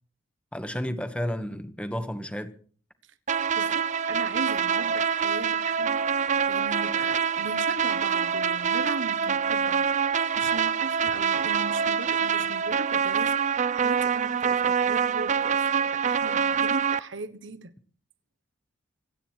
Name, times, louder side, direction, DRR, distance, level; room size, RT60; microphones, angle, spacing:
voice 1, 0.5-2.5, equal, 5° left, 1.3 m, -32 dB
sound 1, 3.3-17.0, right 7 dB, 40° right, 0.6 m, -25 dB
voice 2, 3.6-6.0 6.5-17.7, right 3 dB, 65° right, 1.2 m, -38 dB
26.0 x 9.2 x 4.6 m
head